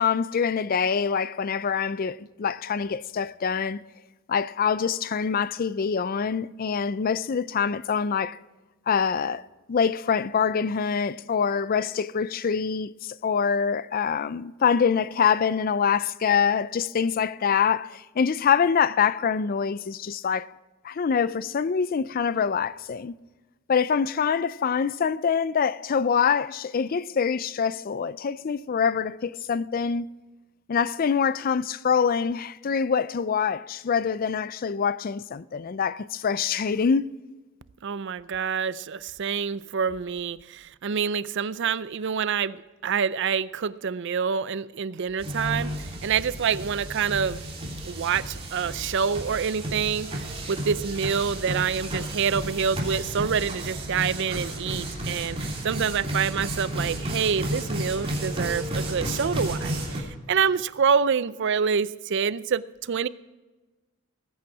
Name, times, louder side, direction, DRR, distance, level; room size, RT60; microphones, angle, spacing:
voice 1, 0.0-3.8 4.3-8.4 8.9-9.4 9.7-20.5 20.8-23.2 23.7-30.1 30.7-37.1, left 6 dB, 40° left, 0.4 m, -25 dB
voice 2, 37.8-47.4 47.9-63.1, right 6 dB, 55° right, 0.5 m, -27 dB
sound 1, 45.2-60.0, right 1 dB, 25° right, 3.0 m, -32 dB
20.0 x 8.8 x 4.7 m
head